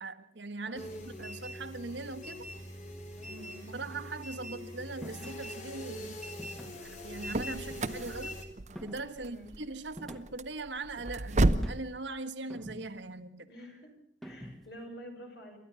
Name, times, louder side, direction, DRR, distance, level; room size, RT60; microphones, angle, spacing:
voice 1, 0.0-2.5 3.7-6.2 6.7-8.4 8.8-13.5, right 3 dB, 80° right, 8 dB, 1.4 m, -40 dB
voice 2, 0.7-1.0 3.2-3.8 9.2-9.5 13.5-13.9 14.2-15.6, equal, 65° left, 3 dB, 6.1 m, -48 dB
sound 1, 0.7-8.4, left 1 dB, 40° left, 3.2 m, -43 dB
sound 2, 5.0-5.4 6.4-6.9 7.7-8.3 8.8-9.2 10.0-10.5 11.5-12.0 12.5-13.1 14.2-14.8, equal, ahead, 1.4 m, -47 dB
sound 3, 6.9-11.8, right 2 dB, 40° right, 0.8 m, -32 dB
29.0 x 13.5 x 7.0 m, 0.69 s
head